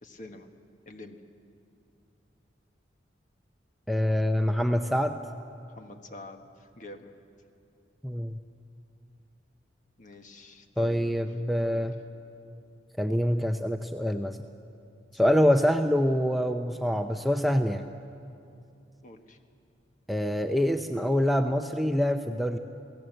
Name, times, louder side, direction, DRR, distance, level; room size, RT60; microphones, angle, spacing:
voice 1, 0.0-0.5 0.8-1.2 5.7-7.1 10.0-11.1 11.7-11.9 15.2-15.7 19.0-19.4, left 1 dB, 45° left, 6 dB, 1.4 m, -47 dB
voice 2, 3.9-5.2 8.0-8.4 10.8-12.0 13.0-14.4 15.1-17.8 20.1-22.6, equal, ahead, 5 dB, 0.5 m, -25 dB
28.0 x 17.5 x 7.9 m, 2.6 s
head